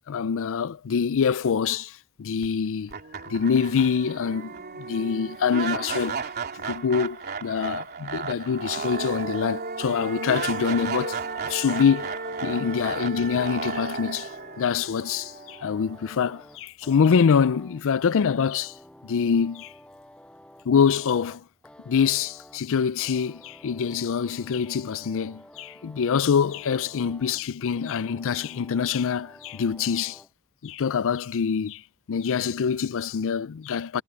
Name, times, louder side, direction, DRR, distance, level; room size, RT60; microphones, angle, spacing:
voice 1, 0.1-2.9 3.3-6.2 6.6-11.2 11.5-12.1 12.4-14.3 14.6-18.7 19.0-19.7 20.7-21.4 21.9-30.2 30.6-31.8 32.1-34.0, left 6 dB, 60° left, 0.4 m, -25 dB
sound 1, 2.4-2.5 2.9-16.0, right 4 dB, 45° right, 3.2 m, -33 dB
sound 2, 11.1-30.3, left 1 dB, 5° left, 7.6 m, -51 dB
head